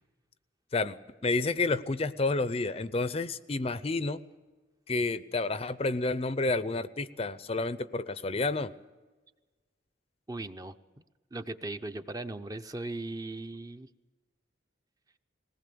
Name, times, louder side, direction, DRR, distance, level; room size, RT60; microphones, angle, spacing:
voice 1, 1.2-4.2 4.9-8.7, left 3 dB, 30° left, 14 dB, 0.5 m, -30 dB
voice 2, 10.3-10.7 11.3-13.9, right 2 dB, 20° right, 9 dB, 0.6 m, -38 dB
20.5 x 19.0 x 6.8 m, 1.3 s
head